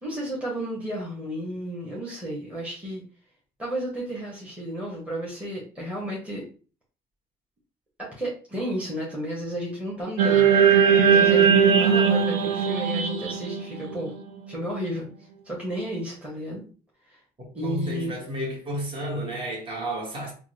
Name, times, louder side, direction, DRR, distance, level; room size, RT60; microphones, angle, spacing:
voice 1, 0.0-3.0 3.6-6.4 8.0-10.5 11.0-14.1 14.5-15.1 15.4-16.6 17.1-17.2 17.5-18.2, equal, 10° right, 1.4 m, -32 dB
sound 1, 10.2-14.5, right 7 dB, 75° right, 0.7 m, -19 dB
voice 2, 17.6-20.3, right 1 dB, 30° right, 1.4 m, -31 dB
3.6 x 2.3 x 3.1 m
cardioid pair, 110°, 17 cm